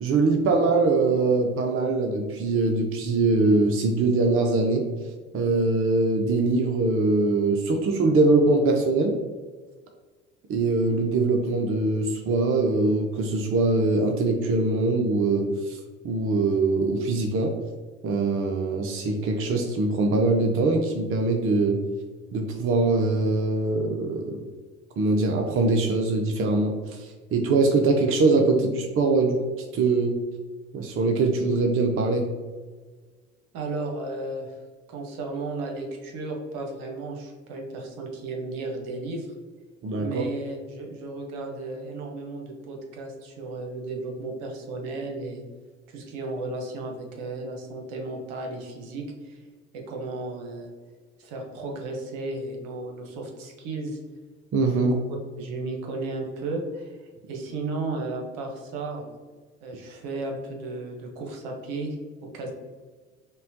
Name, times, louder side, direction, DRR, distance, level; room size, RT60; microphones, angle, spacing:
voice 1, 0.0-4.9 5.3-9.2 10.5-15.8 16.0-17.5 18.0-21.8 22.3-24.4 25.0-29.4 29.7-30.2 30.7-32.3 39.8-40.2 54.5-55.0, right 3 dB, 40° right, 3 dB, 0.6 m, -22 dB
voice 2, 33.5-34.5 34.9-39.3 40.0-45.4 45.9-49.4 49.7-50.7 51.2-54.0 54.6-54.8 55.4-57.0 57.3-59.2 59.6-62.0 62.2-62.5, right 2 dB, 65° right, 1 dB, 0.9 m, -34 dB
5.3 x 2.2 x 2.7 m, 1.4 s
hypercardioid pair, 60°, 35 cm